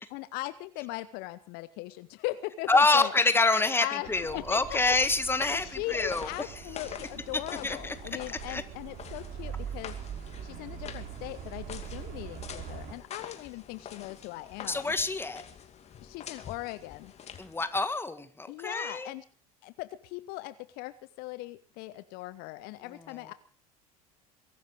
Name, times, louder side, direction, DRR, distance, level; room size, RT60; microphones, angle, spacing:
voice 1, 0.1-3.1 3.8-4.9 5.5-10.0 10.4-14.9 16.0-17.1 18.5-19.2 19.6-23.3, left 18 dB, 55° left, 14 dB, 0.9 m, -39 dB
voice 2, 2.7-6.3 7.6-8.0 8.5-8.6 14.7-15.4 17.4-19.1, left 3 dB, 10° left, 11 dB, 1.9 m, -26 dB
sound 1, 4.0-12.9, right 8 dB, 45° right, 4.5 m, -43 dB
sound 2, 4.6-17.9, left 8 dB, 35° left, 2.5 m, -47 dB
22.5 x 12.5 x 4.9 m, 0.43 s
hypercardioid pair, 75°, 19 cm